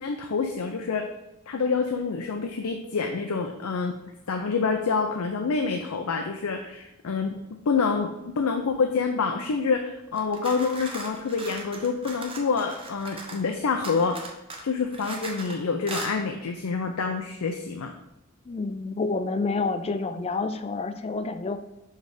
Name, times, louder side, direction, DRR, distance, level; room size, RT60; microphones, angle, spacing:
voice 1, 0.0-1.1 1.5-3.9 4.3-7.4 7.7-14.2 14.6-17.9, left 5 dB, 85° left, 5 dB, 0.5 m, -27 dB
sound 1, 10.1-13.5 13.8-15.6 15.9-16.1, right 3 dB, 25° right, 0.8 m, -38 dB
voice 2, 18.5-21.6, left 3 dB, 25° left, 10 dB, 0.3 m, -28 dB
6.4 x 3.3 x 4.9 m, 0.94 s
head